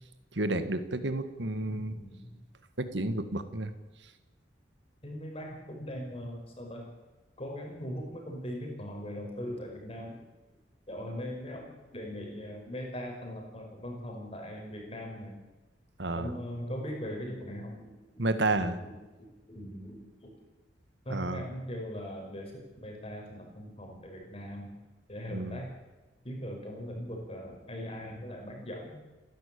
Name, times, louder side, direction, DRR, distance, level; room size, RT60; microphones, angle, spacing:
voice 1, 0.4-1.9 2.8-3.7 16.0-16.3 18.2-18.8 21.1-21.4 25.3-25.6, right 2 dB, 70° right, 10 dB, 1.8 m, -31 dB
voice 2, 1.7-2.4 5.0-6.9 7.4-10.2 10.9-15.4 16.1-20.4 21.1-24.7 25.1-25.7 26.2-29.0, equal, 30° left, 2 dB, 5.4 m, -40 dB
29.5 x 12.0 x 8.6 m, 1.2 s
head